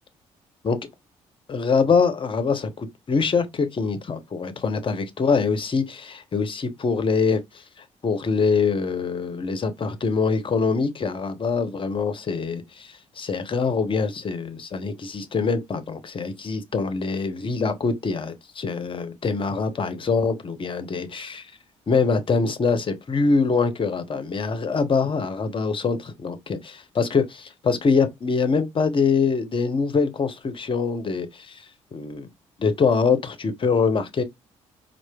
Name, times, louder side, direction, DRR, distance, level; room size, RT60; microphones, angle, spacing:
voice 1, 1.5-7.6 8.0-21.5 21.9-31.7 31.9-32.3 32.6-34.2, left 5 dB, 30° left, 0.7 m, -24 dB
4.3 x 2.5 x 2.3 m
figure-of-eight pair, 45°, 17 cm